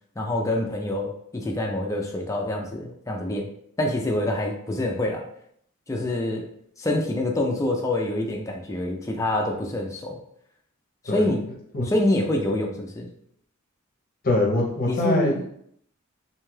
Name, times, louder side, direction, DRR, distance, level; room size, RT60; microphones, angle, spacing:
voice 1, 0.2-3.5 3.8-5.3 5.9-6.4 6.8-10.2 11.0-11.4 11.8-13.1 14.9-15.4, left 1 dB, 15° left, 1 dB, 0.3 m, -26 dB
voice 2, 14.2-15.4, left 1 dB, 45° left, 0 dB, 0.7 m, -23 dB
2.6 x 2.3 x 3.1 m, 0.69 s
head